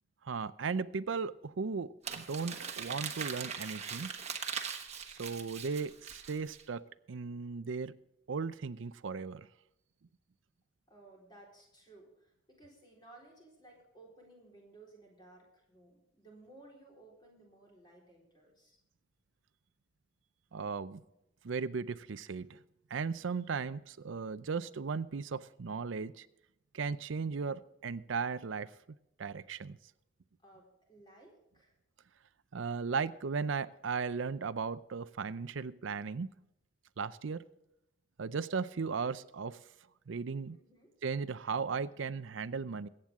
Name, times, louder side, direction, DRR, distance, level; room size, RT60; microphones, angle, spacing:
voice 1, 0.2-4.1 5.2-6.8 7.1-7.9 8.3-9.5 20.5-21.0 21.4-22.6 22.9-26.3 26.7-28.7 29.2-29.8 32.5-36.3 37.0-37.4 38.2-39.6 40.1-40.6 41.0-42.9, right 5 dB, 80° right, 14 dB, 0.5 m, -36 dB
Crumpling crinkling, 2.0-6.6, right 6 dB, 35° right, 1.3 m, -40 dB
voice 2, 10.9-18.8 30.4-31.7 40.5-40.9, right 2 dB, 25° left, -2 dB, 4.1 m, -58 dB
22.0 x 8.9 x 3.6 m, 0.84 s
head